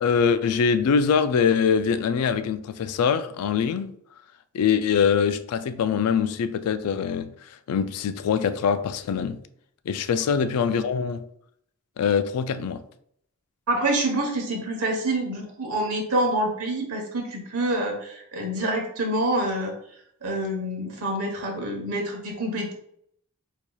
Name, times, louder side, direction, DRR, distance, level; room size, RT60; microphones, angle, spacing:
voice 1, 0.0-3.9 4.5-9.4 9.9-11.2 12.0-12.8, left 6 dB, 85° left, 0.3 m, -23 dB
voice 2, 13.7-19.7 20.2-22.7, right 1 dB, 90° right, 1.0 m, -27 dB
4.5 x 2.7 x 2.3 m
head